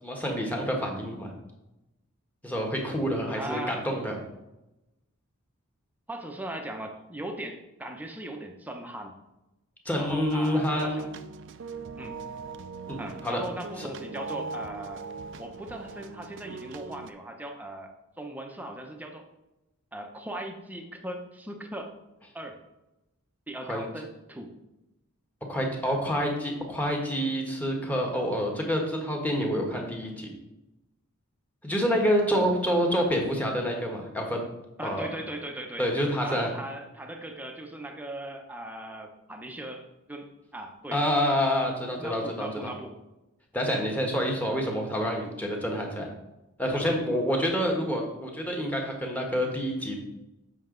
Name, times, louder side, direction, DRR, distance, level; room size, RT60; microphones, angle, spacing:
voice 1, 0.0-1.3 2.4-4.2 9.8-11.0 12.9-13.4 13.8-13.9 23.7-23.8 25.5-30.3 31.6-34.4 34.8-35.2 35.8-36.5 40.9-42.7 43.5-46.1 46.6-50.0, equal, 10° left, 0 dB, 1.4 m, -27 dB
voice 2, 3.4-3.8 6.1-9.2 10.0-11.1 12.0-12.2 13.0-15.0 15.4-19.2 19.9-21.9 22.3-22.6 23.5-24.5 32.3-32.5 34.8-35.9 36.2-41.0 42.0-43.0, right 1 dB, 10° right, 3 dB, 0.8 m, -39 dB
sound 1, 10.0-17.1, right 4 dB, 60° right, 0.5 m, -41 dB
7.7 x 5.8 x 3.8 m, 0.95 s
head